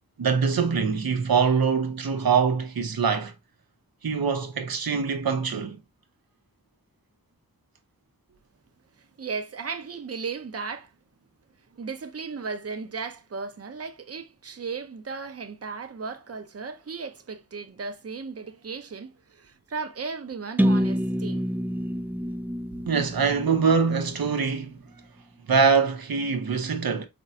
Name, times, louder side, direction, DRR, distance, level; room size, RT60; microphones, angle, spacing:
voice 1, 0.2-3.3 4.0-5.8 22.9-24.8 25.5-27.1, right 5 dB, 85° right, 0.7 m, -23 dB
voice 2, 9.0-10.9 11.7-21.4, right 5 dB, 45° right, 0.7 m, -36 dB
sound 1, 20.6-24.4, equal, 5° right, 0.4 m, -27 dB
5.2 x 2.2 x 2.6 m
wide cardioid pair, 50°, 35 cm